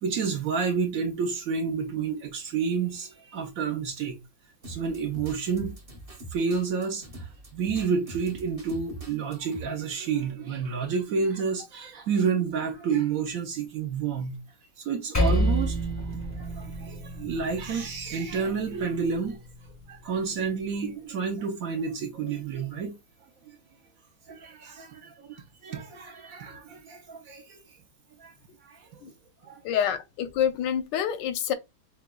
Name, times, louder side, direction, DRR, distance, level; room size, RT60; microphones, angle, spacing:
voice 1, 0.0-4.2 4.7-5.7 6.3-14.4 14.8-15.8 16.4-19.4 19.9-22.9 23.5-23.6 24.3-27.6 28.2-28.3 28.6-28.9 29.4-29.6, right 5 dB, 65° right, 0.9 m, -30 dB
sound 1, 4.6-9.6, right 2 dB, 25° right, 0.8 m, -43 dB
Percussion, 15.1-19.9, right 1 dB, 20° left, 0.4 m, -29 dB
voice 2, 29.6-31.5, left 9 dB, 90° left, 1.3 m, -27 dB
6.7 x 2.3 x 2.2 m
omnidirectional pair, 1.9 m